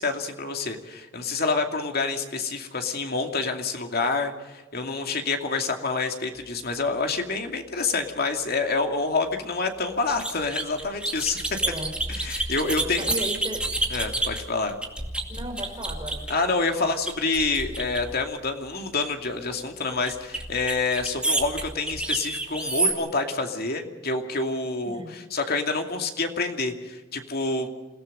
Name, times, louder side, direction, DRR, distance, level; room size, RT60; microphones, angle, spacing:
voice 1, 0.0-11.4 12.1-13.1 13.9-14.8 16.3-27.7, left 3 dB, 50° left, 4 dB, 2.6 m, -27 dB
window cleaning, 10.1-16.5 17.1-18.3 20.1-22.9, right 2 dB, 5° right, 2.3 m, -29 dB
voice 2, 11.6-11.9 12.6-13.7 15.3-16.3 16.7-16.9 24.8-25.1, equal, 20° right, 2 dB, 4.7 m, -35 dB
28.0 x 17.5 x 5.4 m, 1.2 s
head